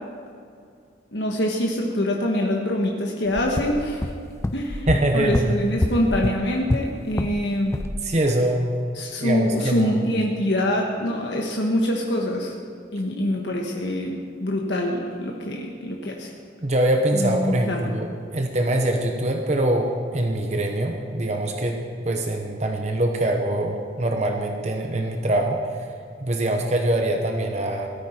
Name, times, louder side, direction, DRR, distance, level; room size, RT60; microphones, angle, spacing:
voice 1, 1.1-4.1 4.5-4.9 5.1-7.7 8.9-12.5 12.9-14.1 14.4-16.3 17.1-17.8, left 1 dB, 70° left, 0 dB, 1.4 m, -24 dB
sound 1, 3.3-7.4 7.7-8.0, left 1 dB, 15° left, 0.4 m, -27 dB
voice 2, 4.9-5.6 8.0-8.7 9.2-10.0 16.6-21.8 22.0-25.6 26.2-27.9, right 1 dB, 35° right, 3 dB, 1.0 m, -23 dB
17.0 x 13.5 x 4.5 m, 2.3 s
head